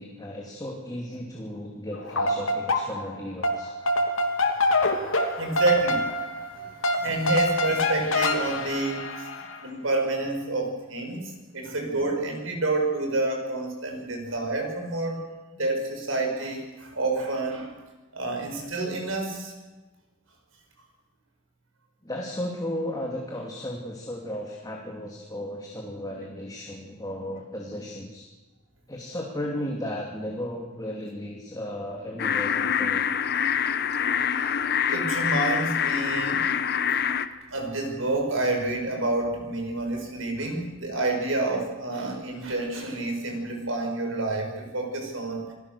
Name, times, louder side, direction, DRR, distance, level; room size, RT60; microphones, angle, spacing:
voice 1, 0.0-3.7 11.5-11.6 22.0-28.2 28.9-33.0, left 1 dB, 20° left, -1 dB, 2.7 m, -35 dB
sound 1, 1.9-3.2 3.4-9.6, left 1 dB, 80° left, 3.2 m, -26 dB
voice 2, 5.4-6.0 6.5-6.7 7.0-9.0 9.6-15.2 15.6-17.7 18.1-19.5 34.9-36.4 37.5-45.5, right 2 dB, 80° right, 3 dB, 6.0 m, -28 dB
sound 2, 32.2-37.3, left 8 dB, 55° left, 1.1 m, -25 dB
28.0 x 19.5 x 6.9 m, 1.2 s
head